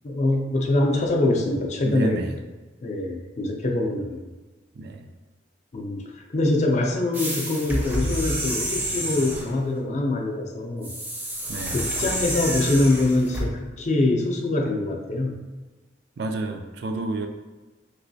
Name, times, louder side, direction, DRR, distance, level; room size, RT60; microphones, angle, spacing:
voice 1, 0.0-2.2 2.8-4.2 5.7-6.0 6.3-10.9 11.7-15.4, left 2 dB, 40° left, 2 dB, 0.4 m, -24 dB
voice 2, 1.8-2.3 4.8-5.0 11.5-11.8 16.2-17.3, right 2 dB, 65° right, 5 dB, 0.3 m, -29 dB
sound 1, 7.1-9.5 10.8-13.5, right 1 dB, 10° right, 0.5 m, -29 dB
3.0 x 3.0 x 2.7 m, 1.2 s
head